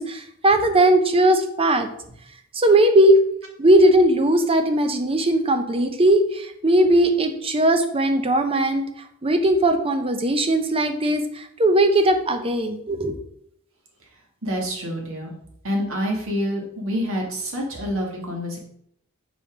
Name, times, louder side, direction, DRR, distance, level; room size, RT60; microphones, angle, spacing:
voice 1, 0.0-1.9 2.5-3.2 3.6-8.8 9.2-13.2, right 1 dB, 25° right, 7 dB, 0.7 m, -18 dB
voice 2, 14.4-15.3 15.6-18.6, equal, 65° right, 0 dB, 1.8 m, -27 dB
5.4 x 4.3 x 5.0 m, 0.71 s
head